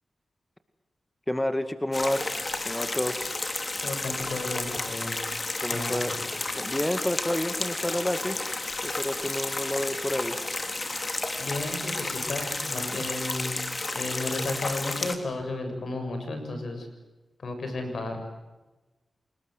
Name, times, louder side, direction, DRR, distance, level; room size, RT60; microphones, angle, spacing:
voice 1, 1.3-2.3 2.7-3.1 5.6-6.1 6.6-8.4 8.8-10.4 12.9-13.0, left 1 dB, 15° left, 9 dB, 2.2 m, -29 dB
sound 1, 1.9-15.1, left 2 dB, 40° left, 3.5 m, -32 dB
voice 2, 3.8-5.2 5.7-6.2 11.4-13.6 13.9-16.9 17.4-18.2, left 2 dB, 75° left, 6 dB, 7.0 m, -33 dB
28.5 x 20.0 x 8.0 m, 1.1 s
cardioid pair, 45°, 0 cm